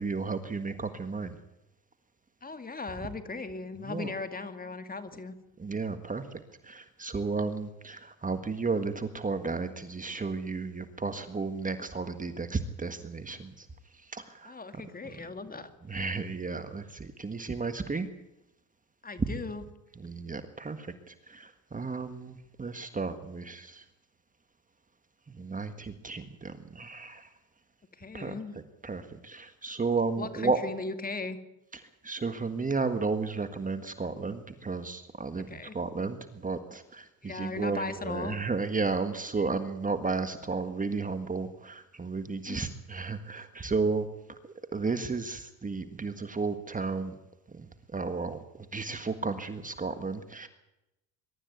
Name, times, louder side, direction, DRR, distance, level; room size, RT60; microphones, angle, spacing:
voice 1, 0.0-1.4 3.8-4.1 5.6-6.3 6.6-13.7 14.0-14.8 15.2-15.3 15.9-18.1 19.2-19.4 20.0-23.8 25.3-27.3 28.1-28.4 28.8-30.6 31.7-44.1 44.4-47.1 47.5-50.5, right 4 dB, 20° right, 9 dB, 1.6 m, -33 dB
voice 2, 2.4-5.3 14.4-15.7 19.0-19.6 28.0-28.5 30.2-31.4 35.5-35.7 37.2-38.4 42.5-42.7, left 3 dB, 20° left, 9 dB, 2.2 m, -38 dB
22.5 x 13.0 x 9.5 m, 0.92 s
supercardioid pair, 90°, 39 cm